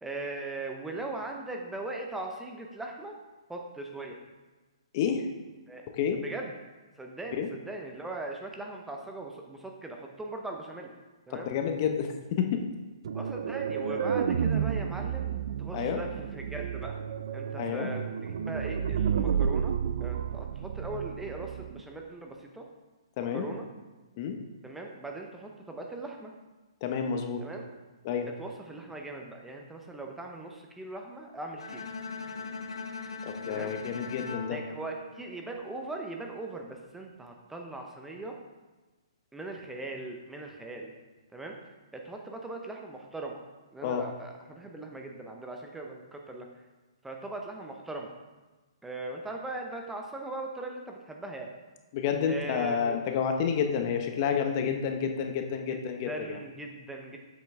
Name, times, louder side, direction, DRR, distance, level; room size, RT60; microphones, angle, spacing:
voice 1, 0.0-3.2 3.5-4.1 5.7-5.8 6.2-6.6 7.0-10.9 11.3-11.5 13.1-15.3 15.6-17.0 17.3-19.7 20.0-22.6 23.3-23.7 24.6-26.3 27.4-27.7 28.4-31.8 33.5-33.7 34.5-38.4 39.3-40.9 41.3-41.6 41.9-43.4 43.7-46.5 47.0-48.1 48.8-51.5 52.3-53.0 55.7-57.2, right 2 dB, 5° right, 1 dB, 0.7 m, -39 dB
voice 2, 4.9-5.3 5.9-6.2 7.3-7.5 11.3-12.6 15.7-16.0 17.6-17.9 23.2-23.5 24.2-24.4 26.8-27.4 28.0-28.3 33.3-34.6 43.8-44.0 51.9-56.4, left 7 dB, 40° left, 5 dB, 0.8 m, -29 dB
sound 1, 13.0-21.8, right 7 dB, 60° right, 0.3 m, -31 dB
Bowed string instrument, 31.6-35.7, left 4 dB, 80° left, 0.7 m, -40 dB
7.3 x 6.0 x 3.5 m, 1.2 s
hypercardioid pair, 135°, 3 cm